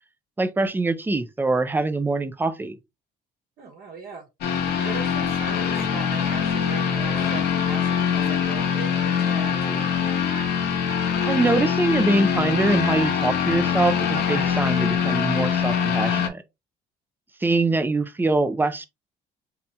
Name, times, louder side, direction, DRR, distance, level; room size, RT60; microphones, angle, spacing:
voice 1, 0.4-2.8 11.3-16.4 17.4-18.8, right 2 dB, 10° right, 0.5 m, -23 dB
voice 2, 3.6-4.2 4.8-9.9, right 4 dB, 60° right, 1.2 m, -39 dB
sound 1, 4.4-16.3, left 7 dB, 75° left, 1.0 m, -23 dB
5.1 x 2.9 x 2.3 m
cardioid pair, 110°, 17 cm